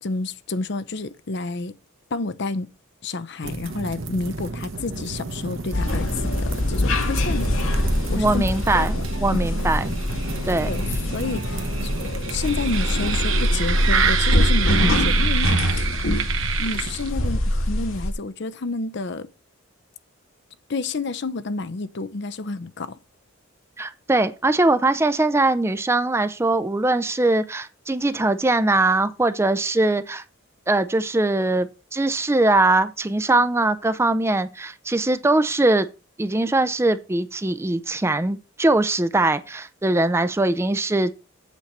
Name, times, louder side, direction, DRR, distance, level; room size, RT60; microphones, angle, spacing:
voice 1, 0.0-1.7 2.1-2.7 3.0-7.5 7.8-8.4 8.8-9.5 10.7-10.8 11.1-11.9 12.3-15.9 16.6-19.3 20.7-23.0, left 3 dB, 55° left, 0.6 m, -30 dB
sound 1, 3.4-17.3, right 6 dB, 70° right, 1.2 m, -29 dB
sound 2, 5.7-18.1, left 1 dB, 75° left, 1.6 m, -23 dB
voice 2, 8.1-8.9 9.2-9.9 10.5-10.7 23.8-30.2 30.7-35.9 36.2-41.1, right 2 dB, 10° right, 0.4 m, -21 dB
8.3 x 4.5 x 6.6 m
head